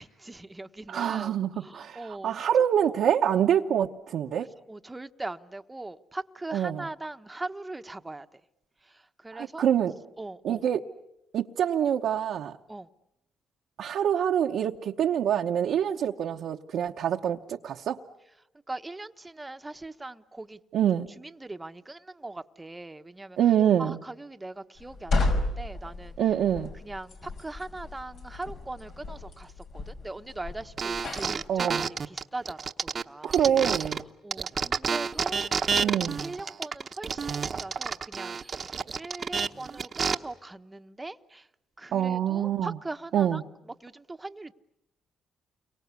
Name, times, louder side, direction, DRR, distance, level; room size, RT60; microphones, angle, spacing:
voice 1, 0.0-2.4 2.9-3.0 4.4-8.4 8.8-9.7 10.2-10.6 12.7-12.9 18.7-20.6 21.2-23.4 23.8-26.2 26.8-33.4 34.2-41.5 41.8-43.4 43.8-44.5, right 2 dB, 15° right, 1.1 m, -41 dB
voice 2, 0.9-4.5 6.5-6.8 9.3-9.9 10.4-10.8 11.3-12.6 13.8-18.0 20.7-21.1 23.4-24.0 26.2-26.7 31.5-31.9 33.2-34.0 35.8-36.2 41.9-42.7 43.1-43.4, right 9 dB, 70° right, 1.0 m, -25 dB
sound 1, 24.8-31.5, left 2 dB, 70° left, 5.2 m, -33 dB
sound 2, 30.8-34.0 34.3-40.1, right 5 dB, 40° right, 1.0 m, -30 dB
29.5 x 23.5 x 8.3 m
cardioid pair, 90°, 0 cm